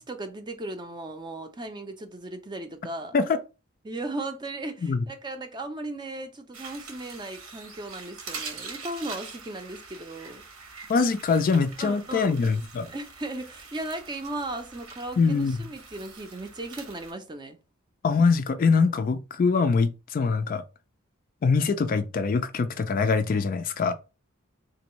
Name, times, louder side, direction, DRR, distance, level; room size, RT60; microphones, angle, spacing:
voice 1, 0.0-3.1 3.8-10.4 11.8-12.4 12.9-17.6, right 2 dB, 20° right, 0.5 m, -36 dB
sound 1, 6.5-17.1, right 4 dB, 85° right, 1.0 m, -44 dB
voice 2, 10.9-12.9 15.2-15.6 18.0-20.6 21.4-23.9, left 4 dB, 40° left, 0.3 m, -23 dB
3.7 x 2.6 x 3.0 m
head